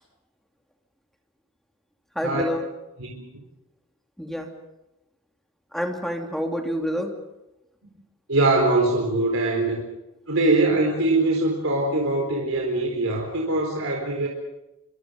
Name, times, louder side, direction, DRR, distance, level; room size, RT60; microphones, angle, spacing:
voice 1, 2.2-2.6 4.2-4.5 5.7-7.1, equal, ahead, 3 dB, 2.8 m, -27 dB
voice 2, 8.3-9.8 10.3-14.3, right 2 dB, 75° right, 0 dB, 4.2 m, -22 dB
26.0 x 26.0 x 5.2 m, 0.94 s
head